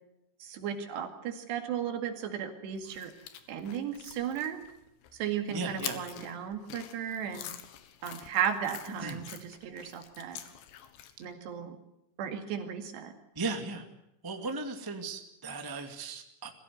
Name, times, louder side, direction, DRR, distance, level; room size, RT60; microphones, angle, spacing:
voice 1, 0.4-3.1 3.5-4.6 5.1-7.5 8.0-10.4 11.2-11.8 12.2-13.1, right 8 dB, 75° right, 5 dB, 4.3 m, -35 dB
sound 1, 2.8-11.3, left 11 dB, 80° left, 3.6 m, -46 dB
voice 2, 5.5-6.0 9.0-9.2 13.3-13.8 14.2-16.5, right 3 dB, 15° right, 4 dB, 0.8 m, -36 dB
23.0 x 16.0 x 9.5 m, 0.86 s
omnidirectional pair, 4.9 m